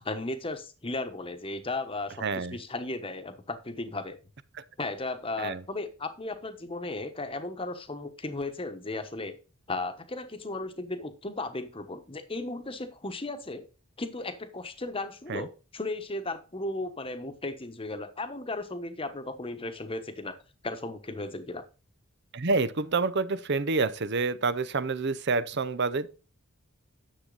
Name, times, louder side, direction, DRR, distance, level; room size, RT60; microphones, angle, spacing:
voice 1, 0.0-4.2 4.8-9.4 9.7-13.7 14.0-20.3 20.6-21.7, left 2 dB, 25° left, 1.1 m, -35 dB
voice 2, 2.2-2.6 5.4-5.6 15.3-15.5 22.3-26.1, right 3 dB, 50° right, 0.6 m, -28 dB
10.0 x 7.3 x 3.9 m
head